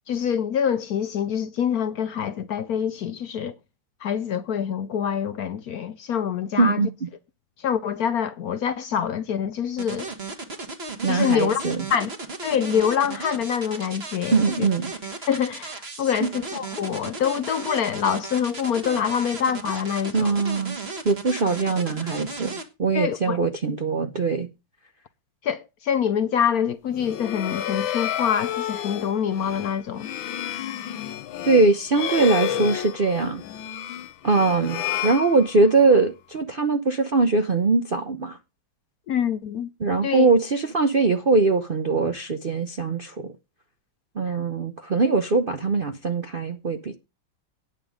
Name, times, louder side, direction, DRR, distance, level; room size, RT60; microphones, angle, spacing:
voice 1, 0.1-3.5 4.0-6.9 7.6-10.1 11.1-11.6 11.9-12.1 12.4-14.7 15.2-20.4 22.9-23.4 25.4-30.1 39.1-39.7 40.0-40.3 44.3-44.4, left 8 dB, 65° left, 1.0 m, -25 dB
voice 2, 6.6-6.9 11.0-11.8 14.3-14.9 16.2-16.3 20.1-20.8 21.0-24.5 31.4-33.4 34.2-38.4 39.8-43.3 44.2-47.0, right 3 dB, 50° right, 0.6 m, -22 dB
sound 1, 9.8-22.6, right 3 dB, 35° right, 1.9 m, -35 dB
sound 2, 26.9-35.9, left 11 dB, 80° left, 1.6 m, -31 dB
9.7 x 9.2 x 5.0 m
omnidirectional pair, 2.1 m